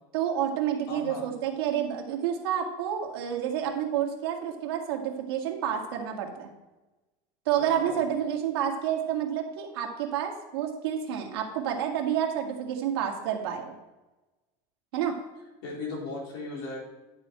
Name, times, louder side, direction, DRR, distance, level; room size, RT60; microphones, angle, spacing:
voice 1, 0.1-6.5 7.5-13.8 14.9-15.1, right 9 dB, 85° right, 1 dB, 2.0 m, -29 dB
voice 2, 0.9-1.3 7.6-8.1 15.6-16.8, left 3 dB, 70° left, -2 dB, 3.7 m, -37 dB
11.0 x 6.9 x 4.4 m, 1.1 s
supercardioid pair, 175°, 13 cm